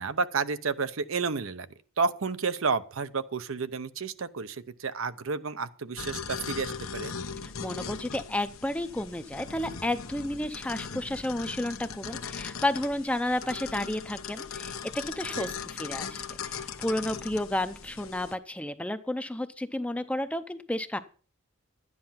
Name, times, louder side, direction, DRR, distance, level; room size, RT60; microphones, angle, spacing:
voice 1, 0.0-1.7 2.0-7.1 15.4-15.5, right 4 dB, 75° right, 0.7 m, -31 dB
sound 1, 6.0-18.3, left 6 dB, 80° left, 1.0 m, -39 dB
voice 2, 7.4-14.8 15.1-21.0, left 1 dB, 5° left, 0.6 m, -32 dB
11.5 x 9.6 x 5.7 m
head